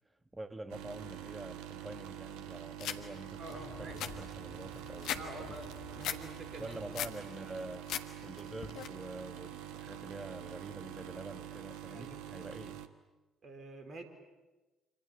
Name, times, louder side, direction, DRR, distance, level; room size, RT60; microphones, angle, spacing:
voice 1, 0.3-5.6 5.9-6.1 6.6-7.9 8.2-12.9, right 2 dB, 15° right, 1.6 m, -46 dB
sound 1, 0.7-12.9, right 11 dB, 65° right, 1.2 m, -46 dB
sound 2, 2.8-3.0 3.5-3.6 3.8-5.2 5.6-6.2 6.6-7.2 7.6-8.0 8.4-8.9, left 10 dB, 60° left, 1.4 m, -38 dB
voice 2, 3.4-4.0 5.1-6.8 11.9-12.2 13.4-14.0, right 2 dB, 40° right, 4.4 m, -47 dB
sound 3, 3.5-9.2 9.5-9.6, left 5 dB, 30° left, 3.9 m, -55 dB
26.5 x 26.5 x 8.2 m
figure-of-eight pair, 50°, 0 cm